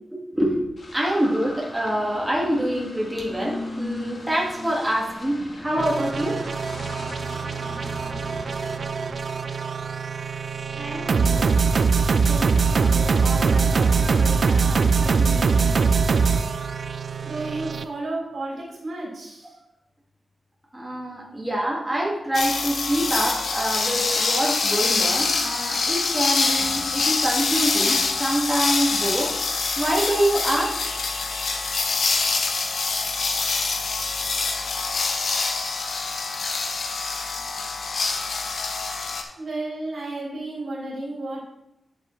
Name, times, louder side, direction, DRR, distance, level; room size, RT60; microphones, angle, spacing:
voice 1, 0.1-0.6 0.9-6.4 14.0-14.1 20.7-29.3 29.8-30.8, right 1 dB, 10° right, -4 dB, 1.8 m, -25 dB
sound 1, 0.8-10.3, left 1 dB, 50° left, 1.8 m, -38 dB
sound 2, 5.8-17.8, right 5 dB, 60° right, 0.5 m, -22 dB
voice 2, 10.7-11.5 12.2-15.8 17.2-19.5 39.4-41.4, right 2 dB, 75° right, -4 dB, 3.4 m, -33 dB
sound 3, 22.3-39.2, left 4 dB, 75° left, 1.0 m, -25 dB
11.0 x 6.7 x 3.2 m, 0.86 s
wide cardioid pair, 120°, 0 cm